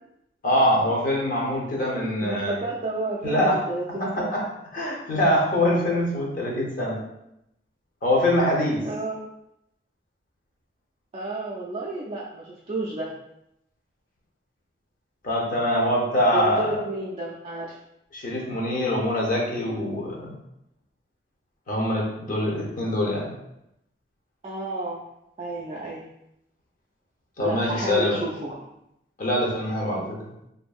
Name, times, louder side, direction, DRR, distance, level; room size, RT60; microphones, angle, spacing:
voice 1, 0.4-2.6 3.2-3.6 4.0-4.4 4.7-7.0 8.0-8.8 15.2-16.7 18.1-20.3 21.7-23.4 27.4-28.2 29.2-30.2, left 1 dB, 50° left, -2 dB, 0.7 m, -24 dB
voice 2, 2.2-4.3 8.6-9.3 11.1-13.1 16.3-17.8 24.4-25.0 25.4-26.0 27.4-28.6, right 2 dB, 35° right, -4 dB, 0.3 m, -31 dB
2.6 x 2.5 x 2.3 m, 0.83 s
head